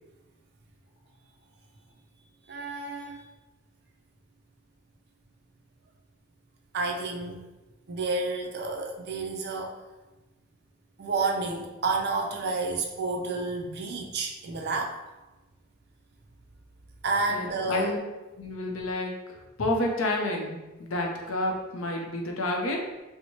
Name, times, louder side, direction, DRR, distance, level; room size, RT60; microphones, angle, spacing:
voice 1, 2.5-3.2 6.7-7.5 7.9-9.8 11.0-15.0 17.0-17.9, right 3 dB, 50° right, 2 dB, 0.5 m, -30 dB
voice 2, 17.3-18.0 18.4-22.8, left 1 dB, 70° left, 1 dB, 0.6 m, -30 dB
4.4 x 2.1 x 2.8 m, 1.1 s
head